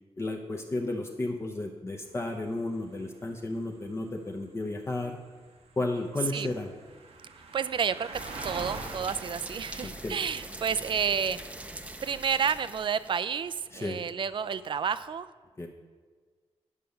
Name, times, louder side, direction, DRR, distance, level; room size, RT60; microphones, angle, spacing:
voice 1, 0.2-5.2 5.8-6.7 9.8-10.2 13.7-14.0 15.6-15.7, left 2 dB, 25° left, 1 dB, 0.7 m, -33 dB
sound 1, 2.0-15.1, right 3 dB, 85° right, 1.0 m, -48 dB
voice 2, 7.5-11.4 12.0-15.3, right 7 dB, 50° right, 14 dB, 0.4 m, -30 dB
sound 2, 8.1-13.2, right 1 dB, 10° right, 0.6 m, -43 dB
9.7 x 5.2 x 6.9 m, 1.5 s
wide cardioid pair, 120°, 10 cm